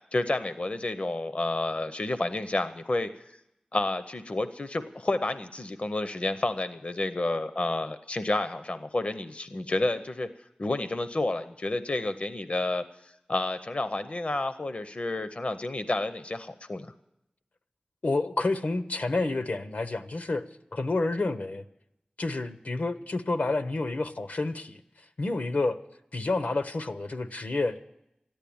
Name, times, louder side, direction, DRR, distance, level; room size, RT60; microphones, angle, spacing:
voice 1, 0.1-3.2 3.7-10.3 10.6-16.9, left 2 dB, 50° left, 10 dB, 0.6 m, -30 dB
voice 2, 18.0-20.4 20.7-21.6 22.2-24.8 25.2-25.8 26.1-27.8, left 2 dB, 75° left, 10 dB, 0.9 m, -29 dB
13.5 x 10.5 x 8.6 m, 0.84 s
wide cardioid pair, 55°, 3 cm